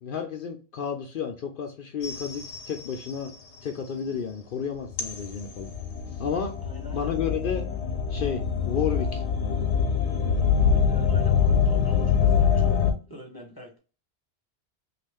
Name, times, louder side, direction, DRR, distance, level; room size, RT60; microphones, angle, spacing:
voice 1, 0.0-3.3 3.6-5.7 6.2-6.5 6.9-7.7 8.1-9.2, left 7 dB, 60° left, 4 dB, 0.6 m, -31 dB
sound 1, 2.0-3.2 4.9-12.9, left 7 dB, 85° left, 1.0 m, -24 dB
voice 2, 6.6-7.2 10.5-12.8 13.1-13.8, equal, 20° left, 1 dB, 0.8 m, -43 dB
3.1 x 2.4 x 3.4 m, 0.35 s
omnidirectional pair, 1.2 m